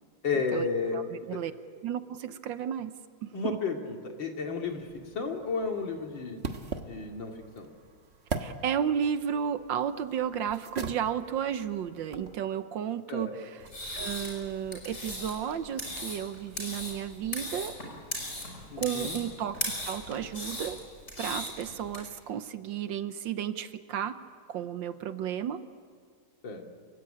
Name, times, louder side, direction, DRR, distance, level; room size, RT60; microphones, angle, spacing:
voice 1, 0.2-1.0 1.3-1.4 3.3-6.5 6.9-7.7 13.1-13.3 18.7-19.2 26.4-26.6, left 4 dB, 65° left, 2 dB, 3.1 m, -32 dB
voice 2, 0.9-1.5 1.8-2.9 3.2-3.6 8.4-13.6 13.9-17.8 18.8-19.6 19.8-20.8 21.2-24.2 24.5-25.6, right 9 dB, 70° right, 11 dB, 1.5 m, -33 dB
sound 1, 4.6-12.3, right 4 dB, 35° right, 1.3 m, -41 dB
sound 2, 13.6-22.0, left 1 dB, 35° left, 6.0 m, -38 dB
27.5 x 16.5 x 10.0 m, 2.1 s
omnidirectional pair, 2.2 m